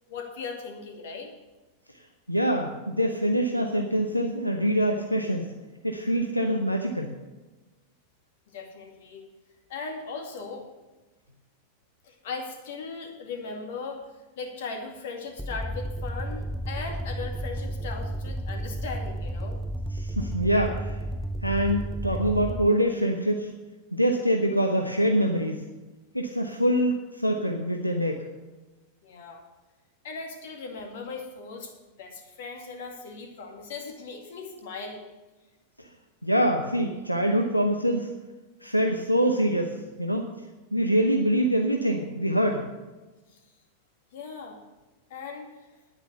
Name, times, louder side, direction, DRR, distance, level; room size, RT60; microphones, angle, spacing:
voice 1, 0.1-1.3 8.5-9.2 9.7-10.7 12.0-14.0 14.4-19.6 29.0-29.4 30.0-31.7 32.0-35.0 44.1-44.6 45.1-45.7, left 4 dB, 55° left, 3 dB, 2.3 m, -38 dB
voice 2, 2.3-5.5 5.8-7.1 19.9-21.0 21.4-23.5 23.9-25.6 26.1-28.2 36.2-38.1 38.6-40.3 40.7-42.7, equal, 90° left, 3 dB, 0.9 m, -25 dB
sound 1, 15.4-22.7, right 1 dB, ahead, 0.4 m, -32 dB
10.0 x 9.4 x 6.8 m, 1.1 s
figure-of-eight pair, 90°, 0 cm